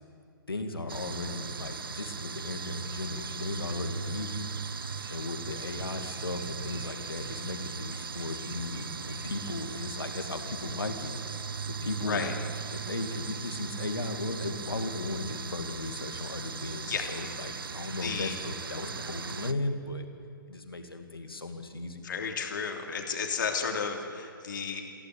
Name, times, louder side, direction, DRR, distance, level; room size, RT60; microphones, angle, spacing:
voice 1, 0.5-4.5 5.1-11.1 11.8-12.3 12.7-20.1 20.5-22.0, left 2 dB, 80° left, 6 dB, 2.5 m, -36 dB
sound 1, 0.9-19.5, right 5 dB, 75° right, 0.8 m, -38 dB
voice 2, 17.9-18.4 22.0-24.8, left 6 dB, 60° left, 3 dB, 3.1 m, -33 dB
21.5 x 16.0 x 9.1 m, 2.3 s
figure-of-eight pair, 125°, 12 cm